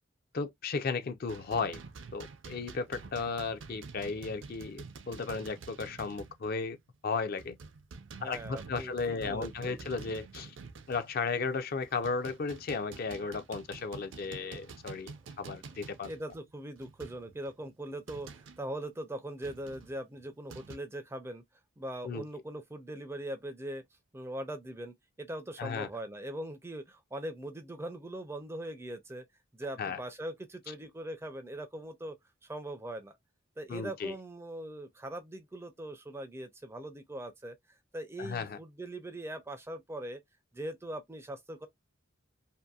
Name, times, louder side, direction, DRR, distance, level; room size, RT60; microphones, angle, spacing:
voice 1, 0.3-1.8 2.1-6.8 7.0-7.6 8.2-10.6 10.9-16.1 22.0-22.2 25.6-25.9 29.8-30.0 33.7-34.2 38.2-38.6, left 4 dB, 50° left, 0.4 m, -35 dB
bomp baloon, 1.3-6.5 6.8-6.9 7.4-11.4 11.8-18.7 19.4-20.8, right 4 dB, 65° right, 0.5 m, -48 dB
voice 2, 8.2-9.9 16.1-21.4 21.8-23.8 24.1-29.2 29.5-32.2 32.4-33.2 33.6-37.6 37.9-40.2 40.5-41.7, right 1 dB, 15° right, 0.4 m, -41 dB
2.7 x 2.5 x 2.3 m
head